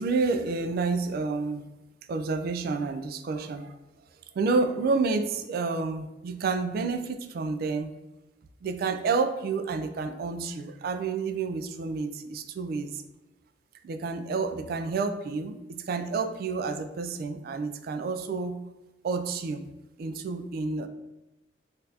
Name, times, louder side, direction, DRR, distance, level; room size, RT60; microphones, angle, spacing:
voice 1, 0.0-1.6 2.1-3.8 4.3-7.9 8.6-13.0 13.8-18.6 19.0-19.6 20.0-20.9, right 4 dB, 55° right, 9 dB, 0.3 m, -29 dB
3.9 x 2.4 x 2.7 m, 1.0 s
head